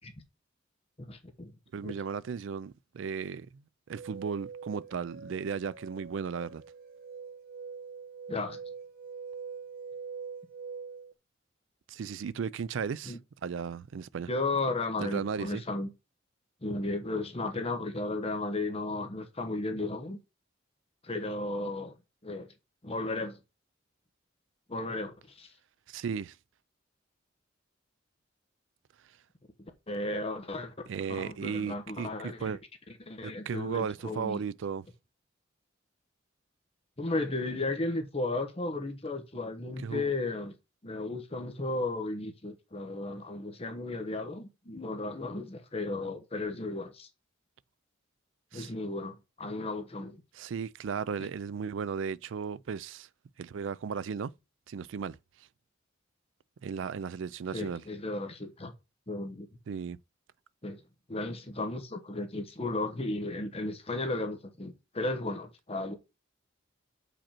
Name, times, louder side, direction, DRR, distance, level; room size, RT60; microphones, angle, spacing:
voice 1, 1.0-1.5 1.8-1.9 8.3-8.6 13.1-13.2 14.3-15.9 16.6-20.2 21.0-21.9 22.2-22.5 22.8-23.4 24.7-25.5 29.9-30.7 31.1-32.6 33.0-34.4 37.0-40.5 40.8-47.1 48.5-50.2 57.5-58.7 59.1-59.5 60.6-60.8 61.1-65.9, left 2 dB, 30° left, 1.1 m, -34 dB
voice 2, 1.7-3.6 3.9-6.6 11.9-14.3 15.0-15.6 25.9-26.3 30.9-32.6 33.2-34.9 39.8-40.1 48.5-48.7 50.3-53.1 53.4-54.3 54.7-55.2 56.6-57.8 59.7-60.0, right 6 dB, 70° right, 0.4 m, -35 dB
sound 1, 4.0-11.1, right 5 dB, 50° right, 1.2 m, -44 dB
7.3 x 5.0 x 4.4 m
head